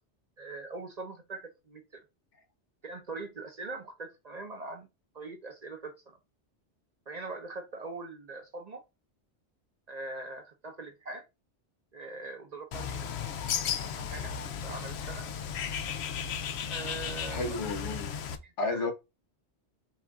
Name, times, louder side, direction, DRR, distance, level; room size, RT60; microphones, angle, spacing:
voice 1, 0.4-2.0 2.8-4.9 5.1-6.2 7.1-8.8 9.9-11.2 11.9-13.0 13.3-13.4 13.8-14.3 14.6-15.3 16.7-17.6 18.4-18.9, right 3 dB, 40° right, 0.8 m, -42 dB
Bird, 12.7-18.4, left 7 dB, 70° left, 0.8 m, -35 dB
voice 2, 17.1-18.1 18.6-18.9, left 3 dB, 90° left, 1.4 m, -33 dB
5.8 x 2.5 x 3.6 m
omnidirectional pair, 1.2 m